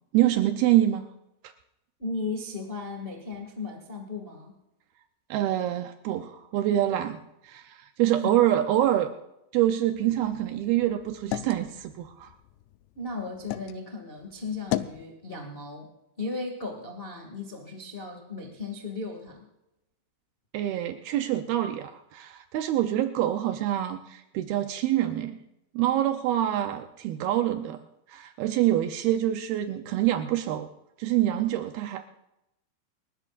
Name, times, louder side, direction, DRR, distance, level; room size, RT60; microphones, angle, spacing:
voice 1, 0.1-1.1 5.3-7.2 7.4-9.1 9.5-12.3 20.5-25.4 25.7-27.8 28.1-30.7 31.0-32.0, right 13 dB, 85° right, 7 dB, 2.1 m, -26 dB
voice 2, 2.0-4.5 8.0-8.3 12.9-15.9 16.2-19.4, left 3 dB, 65° left, 1 dB, 0.5 m, -36 dB
sound 1, 9.9-13.8 14.2-15.0, left 15 dB, 80° left, 2.6 m, -36 dB
29.5 x 13.5 x 2.5 m, 0.88 s
omnidirectional pair, 5.4 m